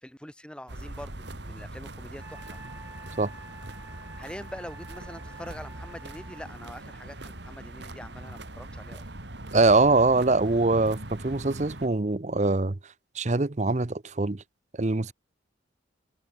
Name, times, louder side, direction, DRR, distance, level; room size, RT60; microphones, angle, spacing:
voice 1, 0.0-2.6 4.2-9.1, equal, 5° left, 2.2 m, -44 dB
sound 1, 0.7-11.9, right 1 dB, 65° right, 2.7 m, -41 dB
Wind instrument woodwind instrument, 2.2-6.5, right 2 dB, 10° right, 5.5 m, -50 dB
voice 2, 9.5-12.8 13.1-14.4 14.8-15.1, right 3 dB, 35° right, 0.7 m, -23 dB
head